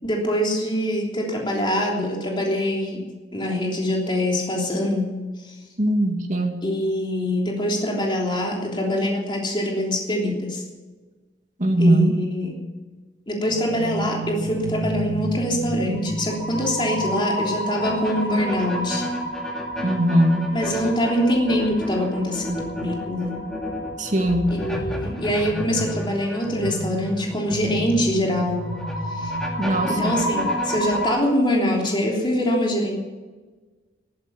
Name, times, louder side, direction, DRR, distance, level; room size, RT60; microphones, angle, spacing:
voice 1, 0.0-3.0 3.3-5.1 5.4-5.6 6.6-10.6 11.8-12.5 13.3-19.1 20.5-23.4 24.6-28.6 29.1-29.4 29.9-32.9, left 1 dB, 25° left, -1 dB, 3.3 m, -24 dB
voice 2, 5.8-6.6 11.6-12.2 19.8-20.5 24.0-24.5 29.6-30.2, right 1 dB, 45° right, 3 dB, 2.2 m, -20 dB
sound 1, 13.5-31.1, equal, 5° left, 2.4 m, -30 dB
14.5 x 12.5 x 7.1 m, 1.3 s
head